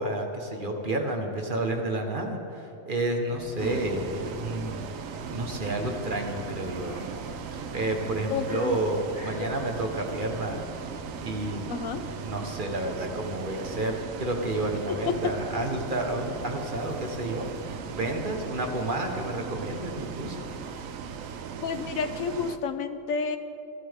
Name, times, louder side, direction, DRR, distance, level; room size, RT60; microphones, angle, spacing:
voice 1, 0.0-4.9 5.3-7.1 7.5-10.6 11.2-11.7 11.9-20.4, right 1 dB, 40° right, 3 dB, 1.5 m, -30 dB
sound 1, 3.3-21.2, left 1 dB, 15° left, 4.0 m, -45 dB
Bus, 3.6-22.6, right 7 dB, 80° right, 1.1 m, -38 dB
voice 2, 8.3-8.8 9.4-9.5 11.7-12.0 14.9-15.2 21.6-23.4, left 6 dB, 90° left, 9 dB, 1.2 m, -30 dB
28.5 x 12.0 x 3.6 m, 2.8 s
omnidirectional pair, 1.4 m